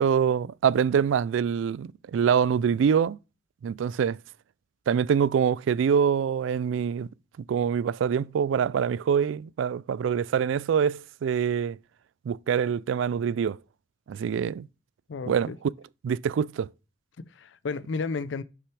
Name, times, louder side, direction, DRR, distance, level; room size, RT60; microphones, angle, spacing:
voice 1, 0.0-3.2 3.6-4.2 4.9-7.1 7.5-11.8 12.3-13.6 14.1-14.7 15.3-15.5 16.0-16.7, right 7 dB, 90° right, 0.3 m, -25 dB
voice 2, 15.1-15.6 17.2-18.4, left 4 dB, 70° left, 0.5 m, -33 dB
6.8 x 5.9 x 4.6 m
head